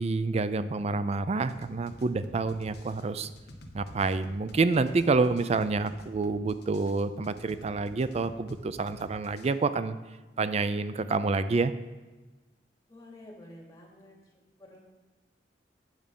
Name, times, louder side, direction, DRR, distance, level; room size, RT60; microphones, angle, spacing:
voice 1, 0.0-3.3 3.7-10.0 10.4-11.7, right 3 dB, 35° right, 13 dB, 0.4 m, -28 dB
sound 1, 1.5-9.5, left 1 dB, 65° left, 1.1 m, -49 dB
voice 2, 12.9-14.3 14.6-14.8, left 1 dB, 20° left, -3 dB, 2.7 m, -50 dB
8.9 x 6.2 x 5.3 m, 1.2 s
head